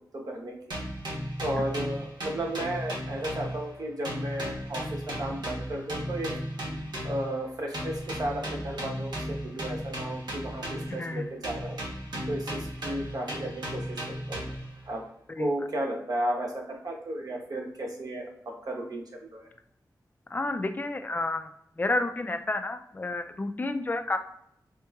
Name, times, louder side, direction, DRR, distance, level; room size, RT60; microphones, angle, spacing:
voice 1, 0.1-0.6 1.4-6.3 7.0-11.8 12.3-14.0 14.3-14.5 14.9-15.0 15.4-19.0 19.3-19.5, right 1 dB, 60° right, 0 dB, 0.8 m, -34 dB
sound 1, 0.7-3.8 4.0-7.3 7.7-11.1 11.4-14.7, equal, 85° right, 1.0 m, -35 dB
voice 2, 10.9-11.2 15.3-15.5 20.3-21.5 21.8-24.2, left 2 dB, 25° left, 8 dB, 0.3 m, -30 dB
4.4 x 2.9 x 2.3 m, 0.73 s
wide cardioid pair, 110°, 7 cm